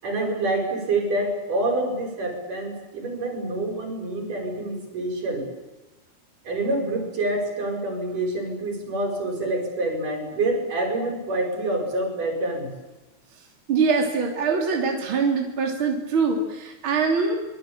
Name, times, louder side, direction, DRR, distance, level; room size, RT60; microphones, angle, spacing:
voice 1, 0.0-5.5 6.5-12.7, right 2 dB, 70° right, 3 dB, 7.0 m, -27 dB
voice 2, 13.7-17.3, right 5 dB, 40° right, 1 dB, 3.8 m, -23 dB
25.0 x 22.0 x 8.8 m, 1.1 s
omnidirectional pair, 3.9 m